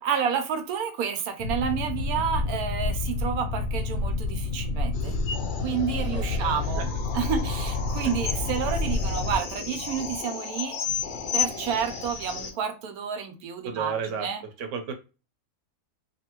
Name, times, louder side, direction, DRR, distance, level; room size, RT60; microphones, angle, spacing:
voice 1, 0.0-5.2 5.6-6.9 7.1-10.8 11.3-14.4, right 7 dB, 90° right, 6 dB, 1.2 m, -30 dB
Boat Water vehicle, 1.4-9.4, left 3 dB, 70° left, 0.9 m, -29 dB
sound 1, 4.9-12.5, left 7 dB, 90° left, 0.4 m, -34 dB
voice 2, 6.1-6.9 8.0-8.1 13.6-14.3 14.6-14.9, right 6 dB, 65° right, 5 dB, 1.0 m, -33 dB
2.7 x 2.6 x 2.9 m, 0.30 s
omnidirectional pair, 1.5 m